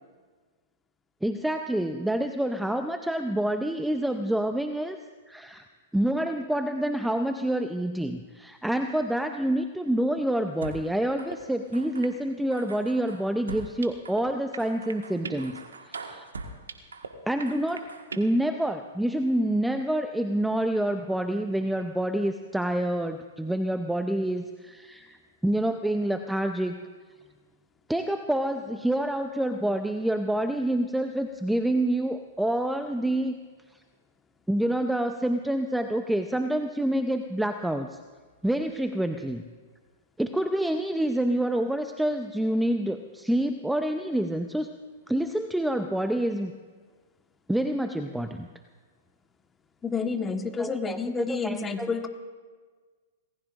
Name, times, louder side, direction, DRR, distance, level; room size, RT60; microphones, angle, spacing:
voice 1, 1.2-5.0 5.3-5.6 5.9-15.5 15.8-16.3 17.3-17.9 18.2-26.8 27.9-33.4 34.5-38.0 38.4-39.4 40.2-44.7 45.1-46.5 47.5-48.5 50.6-51.0 51.3-51.9, right 1 dB, 5° right, 7 dB, 0.7 m, -27 dB
sound 1, 10.6-10.8 11.2-11.4 11.7-12.1 12.5-14.2 14.5-17.1 17.4-18.2, right 4 dB, 85° right, 1.6 m, -40 dB
voice 2, 49.8-52.1, left 4 dB, 15° left, 6 dB, 1.3 m, -29 dB
26.5 x 19.5 x 2.6 m, 1.5 s
hypercardioid pair, 120°, 0 cm